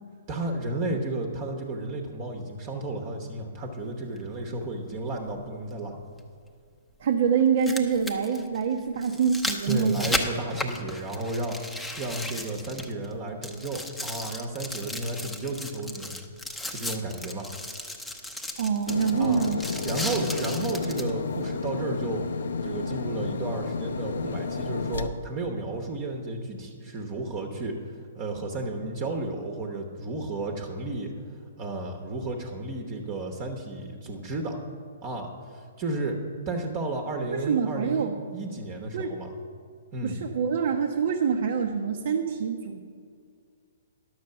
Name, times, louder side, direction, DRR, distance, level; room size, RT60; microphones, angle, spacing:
voice 1, 0.3-6.0 9.7-16.2 16.7-17.5 19.2-19.4 19.8-22.2 22.6-27.8 28.1-31.1 31.6-34.6 35.0-36.2 36.5-39.3 39.9-40.2, right 2 dB, 35° right, 3 dB, 1.1 m, -33 dB
sound 1, 4.2-4.3 6.2-6.3 7.4-13.1 13.4-21.1 21.7-21.8, left 1 dB, 5° left, 0.8 m, -35 dB
voice 2, 7.0-10.2 10.5-10.6 18.6-19.6 37.3-38.1 38.9-39.2 40.0-42.8, right 6 dB, 60° right, 2 dB, 0.8 m, -25 dB
sound 2, 18.9-25.1, left 4 dB, 75° left, 0.6 m, -31 dB
10.5 x 6.5 x 6.7 m, 2.1 s
hypercardioid pair, 135°, 0 cm